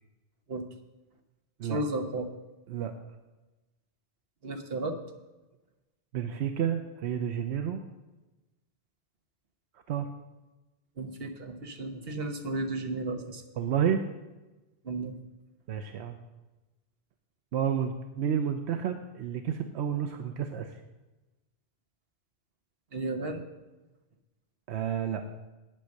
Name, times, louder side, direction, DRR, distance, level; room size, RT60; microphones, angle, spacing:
voice 1, 1.7-2.3 4.4-4.9 11.0-13.4 14.8-15.1 22.9-23.4, right 2 dB, 65° right, 5 dB, 1.4 m, -33 dB
voice 2, 6.1-7.8 9.9-10.1 13.6-14.0 15.7-16.2 17.5-20.7 24.7-25.2, right 8 dB, 85° right, 7 dB, 1.0 m, -30 dB
9.0 x 8.9 x 6.5 m, 1.1 s
omnidirectional pair, 1.1 m